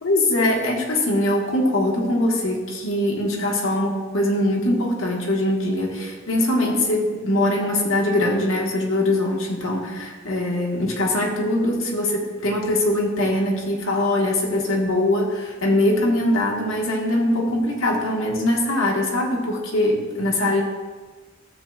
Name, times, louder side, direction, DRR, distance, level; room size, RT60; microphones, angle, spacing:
voice 1, 0.0-20.6, left 1 dB, 90° left, -1 dB, 1.5 m, -22 dB
12.5 x 7.6 x 2.4 m, 1.4 s
head